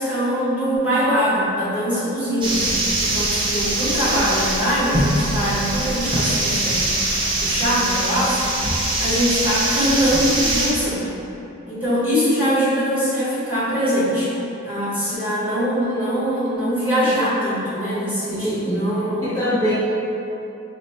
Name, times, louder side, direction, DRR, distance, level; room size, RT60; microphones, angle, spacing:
voice 1, 0.0-6.9 7.3-8.6 9.0-11.1 11.7-14.3 14.6-19.2, equal, 10° right, -13 dB, 1.3 m, -22 dB
sound 1, 2.4-10.7, right 1 dB, 25° right, 0.5 m, -22 dB
voice 2, 18.4-18.9 19.2-19.7, equal, 15° left, -16 dB, 0.9 m, -22 dB
4.3 x 2.1 x 4.1 m, 2.9 s
head